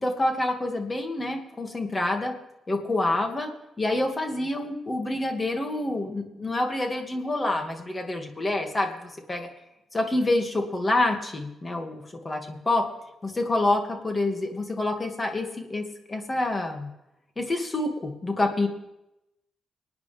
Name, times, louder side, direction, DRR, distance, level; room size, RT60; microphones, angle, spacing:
voice 1, 0.0-2.3 2.7-3.5 3.8-9.5 9.9-12.8 13.2-16.9 17.4-18.7, left 2 dB, 30° left, 4 dB, 2.4 m, -27 dB
24.5 x 9.6 x 3.6 m, 0.88 s
supercardioid pair, 50°, 0 cm